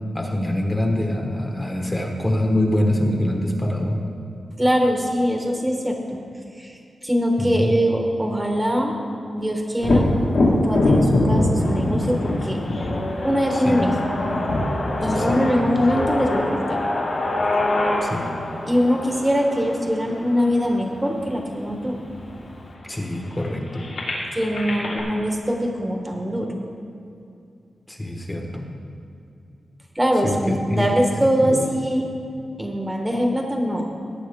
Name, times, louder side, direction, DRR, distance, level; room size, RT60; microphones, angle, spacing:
voice 1, 0.1-4.0 7.4-7.7 13.5-14.1 15.1-15.8 18.0-18.4 22.9-23.9 27.9-28.6 30.2-30.9 31.2-31.7, left 1 dB, 15° left, 1 dB, 1.2 m, -25 dB
voice 2, 4.6-6.2 6.6-6.7 7.0-8.9 9.3-10.1 10.4-12.6 13.2-13.9 15.0-16.8 18.7-22.0 24.3-26.5 29.9-32.0 32.6-33.8, equal, 10° right, 1 dB, 1.1 m, -22 dB
Thunder, 9.8-17.5 21.1-21.2 21.7-22.6, left 1 dB, 55° left, 1.7 m, -23 dB
sound 1, 11.6-21.5 22.2-22.3 22.5-25.0, left 2 dB, 70° left, 3.2 m, -27 dB
18.0 x 9.1 x 3.5 m, 2.6 s
wide cardioid pair, 155°, 0 cm